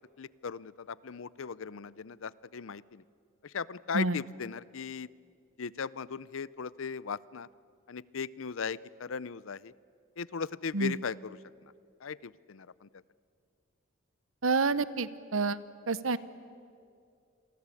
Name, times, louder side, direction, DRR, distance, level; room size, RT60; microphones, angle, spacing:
voice 1, 0.2-3.0 3.4-5.1 5.6-7.5 7.9-9.7 10.2-11.4 12.0-12.9, left 6 dB, 70° left, 20 dB, 0.6 m, -38 dB
voice 2, 14.4-15.6 15.9-16.2, right 3 dB, 75° right, 16 dB, 0.9 m, -28 dB
29.0 x 23.0 x 8.5 m, 2.4 s
head